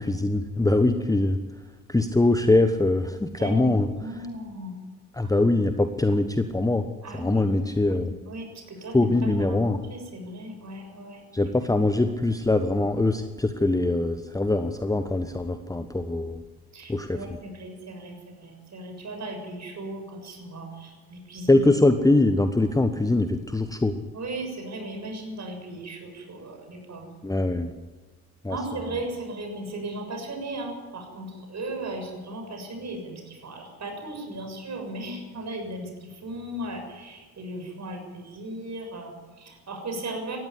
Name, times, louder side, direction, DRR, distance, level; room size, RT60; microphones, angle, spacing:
voice 1, 0.0-1.4 1.9-3.9 5.1-6.9 7.1-8.1 8.9-9.8 11.3-16.4 16.9-17.2 21.5-24.0 27.2-27.7 28.4-28.6, left 2 dB, 10° left, 9 dB, 1.2 m, -23 dB
voice 2, 3.4-4.7 5.2-5.3 7.0-9.1 9.5-11.2 16.7-21.6 24.1-27.1 28.5-40.4, right 1 dB, 35° right, 4 dB, 7.0 m, -37 dB
19.0 x 14.5 x 9.8 m, 1.3 s
figure-of-eight pair, 55°, 45 cm